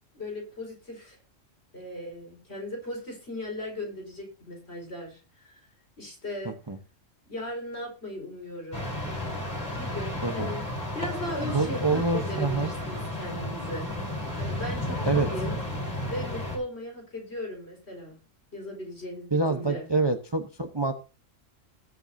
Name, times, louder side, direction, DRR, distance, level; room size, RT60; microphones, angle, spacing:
voice 1, 0.1-1.2 1.7-5.7 6.0-6.5 7.3-8.9 9.7-10.6 10.9-15.6 16.1-18.2 18.5-19.9, left 1 dB, 50° left, 1 dB, 4.8 m, -37 dB
voice 2, 6.4-6.8 10.2-10.5 11.4-12.7 15.0-15.3 19.3-20.9, right 3 dB, 20° right, 6 dB, 0.9 m, -26 dB
sound 1, 8.7-16.6, left 1 dB, 35° left, 4.5 m, -32 dB
19.5 x 7.9 x 2.7 m, 0.33 s
omnidirectional pair, 1.4 m